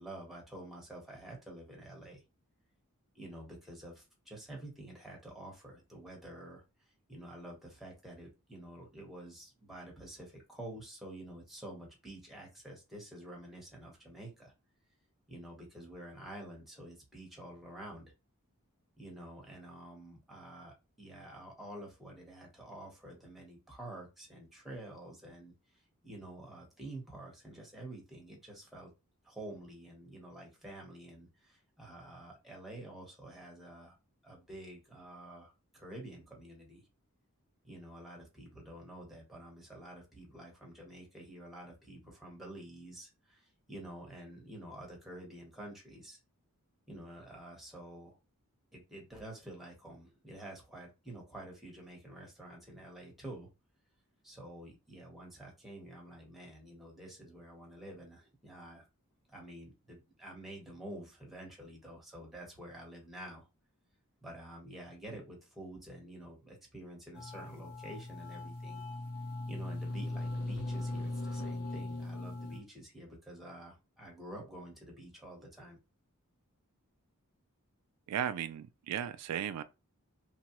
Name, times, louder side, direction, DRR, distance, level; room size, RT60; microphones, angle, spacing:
voice 1, 0.0-2.2 3.1-6.6 7.1-14.5 15.3-18.1 19.0-28.9 29.2-34.0 34.2-36.8 37.6-46.2 46.9-48.2 48.7-53.5 54.2-58.8 59.3-63.5 64.2-68.8 69.5-75.8, right 1 dB, ahead, 1.1 m, -49 dB
sound 1, 67.2-72.6, left 2 dB, 75° left, 0.7 m, -39 dB
voice 2, 78.1-79.6, right 9 dB, 90° right, 0.3 m, -35 dB
3.0 x 2.2 x 2.9 m
head